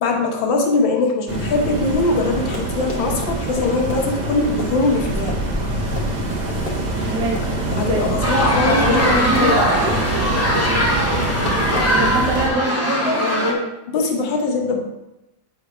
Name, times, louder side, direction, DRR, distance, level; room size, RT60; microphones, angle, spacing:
voice 1, 0.0-5.4 7.8-9.7 11.7-11.9 13.9-14.8, left 3 dB, 85° left, 2 dB, 1.8 m, -21 dB
sound 1, 1.3-12.5, right 1 dB, 30° right, 0.8 m, -24 dB
Run, 2.3-12.7, left 3 dB, 65° left, 1.7 m, -35 dB
voice 2, 7.0-7.4 7.7-8.0 8.8-10.0 11.5-13.7, right 1 dB, 65° right, 0 dB, 1.6 m, -24 dB
sound 2, 8.2-13.5, equal, 15° left, 0.5 m, -20 dB
7.7 x 3.3 x 4.9 m, 0.92 s
omnidirectional pair, 2.0 m